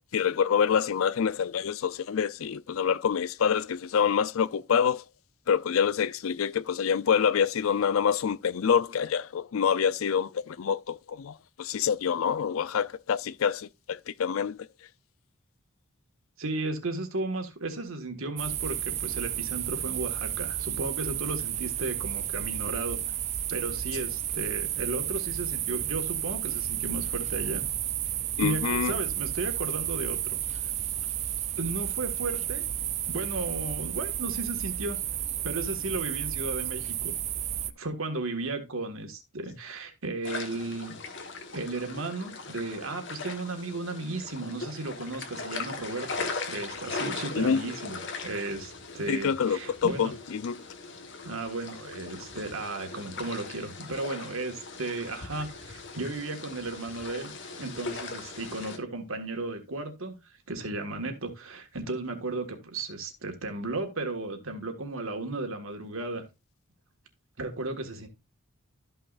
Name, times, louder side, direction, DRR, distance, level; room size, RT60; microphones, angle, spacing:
voice 1, 0.1-5.0 5.5-14.6 28.4-28.9 47.4-47.6 49.1-50.6, left 7 dB, 80° left, 0.4 m, -26 dB
voice 2, 16.4-23.0 23.5-27.7 28.4-30.4 31.6-32.6 33.1-35.0 35.4-37.1 37.8-41.0 41.5-50.1 51.2-57.3 57.6-60.2 60.5-66.2 67.4-68.1, right 2 dB, 80° right, 1.7 m, -35 dB
sound 1, 18.4-37.7, right 11 dB, 30° right, 0.4 m, -32 dB
sound 2, 40.2-58.8, left 4 dB, 55° left, 1.3 m, -39 dB
13.0 x 5.7 x 2.5 m
head